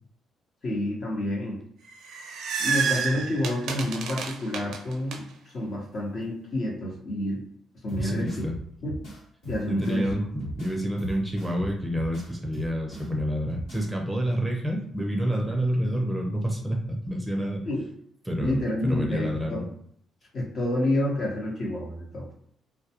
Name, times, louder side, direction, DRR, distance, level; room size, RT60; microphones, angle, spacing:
voice 1, 0.6-1.6 2.6-7.4 7.8-8.3 8.8-9.0 9.5-10.1 17.6-17.9 18.4-19.6 20.3-22.3, left 1 dB, 55° left, -2 dB, 0.9 m, -29 dB
sound 1, 1.9-5.2, right 6 dB, 80° right, 0.4 m, -29 dB
sound 2, 7.9-13.9, equal, 85° left, 1.4 m, -39 dB
voice 2, 8.0-8.5 9.7-17.6 18.2-19.6, equal, 5° right, -1 dB, 0.5 m, -28 dB
2.2 x 2.2 x 2.8 m, 0.65 s
cardioid pair, 90°, 0 cm